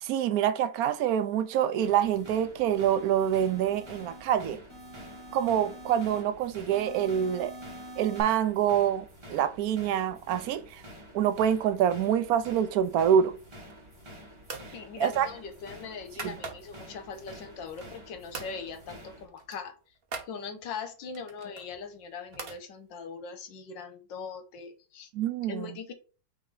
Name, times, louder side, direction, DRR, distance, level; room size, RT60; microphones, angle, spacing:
voice 1, 0.0-4.6 5.3-7.5 8.0-10.8 11.1-13.3 15.0-15.3 16.2-16.3 25.1-25.7, right 9 dB, 70° right, 0.9 m, -26 dB
sound 1, 1.1-2.2 2.7-4.2 4.7-6.2 6.7-8.2, equal, 35° left, 3.7 m, -47 dB
sound 2, 1.8-19.3, equal, 15° right, 1.2 m, -49 dB
sound 3, 13.5-14.0 14.4-14.7 15.1-16.9 17.4-18.0 18.3-18.6 18.9-19.0 19.3-20.3 21.1-22.6, right 4 dB, 45° right, 0.9 m, -43 dB
voice 2, 14.7-19.7 20.3-25.1 25.5-25.9, left 5 dB, 75° left, 1.5 m, -40 dB
8.9 x 3.2 x 3.9 m
omnidirectional pair, 2.1 m